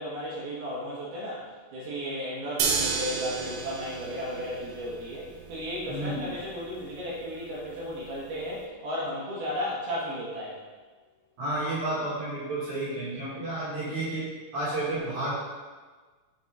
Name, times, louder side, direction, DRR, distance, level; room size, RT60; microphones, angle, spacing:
voice 1, 0.0-1.4 1.7-10.6, equal, 60° right, -6 dB, 2.9 m, -34 dB
sound 1, 2.6-8.6, right 5 dB, 85° right, 3.5 m, -34 dB
voice 2, 5.9-6.2 11.4-14.3 14.5-15.3, right 2 dB, 45° right, -10 dB, 3.0 m, -31 dB
8.4 x 6.3 x 4.0 m, 1.4 s
omnidirectional pair, 6.0 m